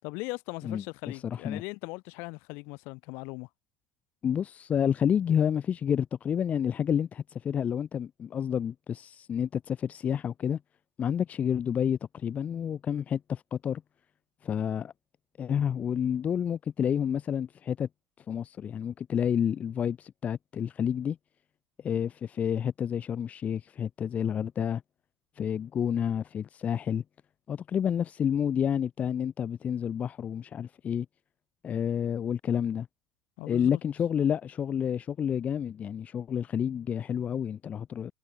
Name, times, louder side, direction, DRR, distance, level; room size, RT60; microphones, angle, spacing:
voice 1, 0.0-3.5 33.4-33.8, left 28 dB, 60° left, 5.6 m, -39 dB
voice 2, 0.6-1.6 4.2-10.6 11.0-13.8 14.4-14.9 15.4-17.9 18.3-21.2 21.8-24.8 25.4-27.0 27.5-31.1 31.6-32.9 33.5-38.1, left 8 dB, 35° left, 2.0 m, -29 dB
figure-of-eight pair, 70°, 4 cm